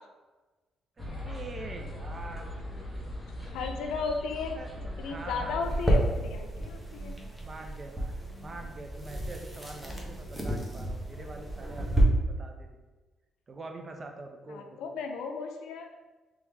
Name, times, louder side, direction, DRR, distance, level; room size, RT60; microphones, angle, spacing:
sound 1, 1.0-6.0, left 1 dB, 10° left, 1.2 m, -39 dB
voice 1, 1.0-2.4 4.0-4.1 4.6-5.6 7.4-12.1 12.4-12.8 13.5-15.0, right 2 dB, 35° right, 3 dB, 0.6 m, -44 dB
voice 2, 3.5-4.6 5.0-7.1 14.5-15.9, left 4 dB, 90° left, 4 dB, 0.4 m, -35 dB
sound 2, 5.6-12.0, right 1 dB, 5° right, 0.8 m, -32 dB
3.4 x 3.0 x 3.4 m, 1.2 s
cardioid pair, 90°, 0 cm